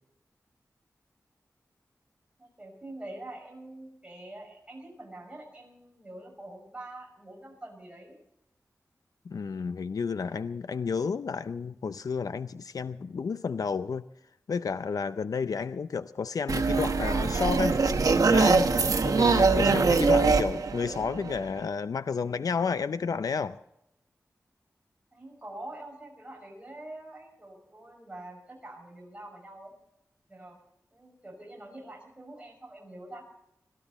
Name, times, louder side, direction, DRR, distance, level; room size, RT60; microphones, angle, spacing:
voice 1, 2.4-8.2 25.1-29.7 30.3-30.6 30.9-33.3, right 1 dB, 20° right, 0 dB, 6.0 m, -45 dB
voice 2, 9.3-14.0 14.5-17.8 18.3-18.7 19.0-23.6, left 5 dB, 90° left, 12 dB, 0.4 m, -31 dB
sound 1, 16.5-21.6, right 4 dB, 75° right, 1.1 m, -23 dB
21.5 x 14.0 x 4.1 m, 0.82 s
wide cardioid pair, 85°, 6 cm